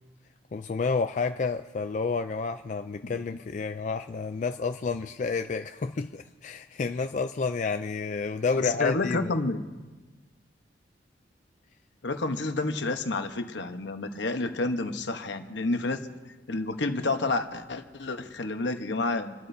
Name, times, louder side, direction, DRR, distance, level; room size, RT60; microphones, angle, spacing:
voice 1, 0.5-9.3, left 4 dB, 40° left, 8 dB, 0.4 m, -30 dB
voice 2, 8.6-9.6 12.0-16.0 16.5-19.3, left 2 dB, 75° left, 7 dB, 1.0 m, -29 dB
29.0 x 12.5 x 2.7 m, 1.2 s
head